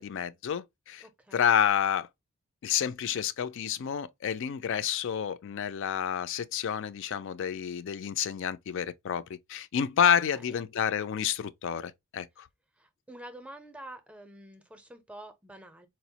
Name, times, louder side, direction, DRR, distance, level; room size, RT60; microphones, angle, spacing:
voice 1, 0.0-1.0 1.3-2.1 2.6-12.5, left 8 dB, 55° left, 0.3 m, -29 dB
voice 2, 1.0-1.5 10.3-10.6 12.8-15.9, right 1 dB, 5° right, 0.5 m, -48 dB
4.4 x 2.0 x 2.7 m
head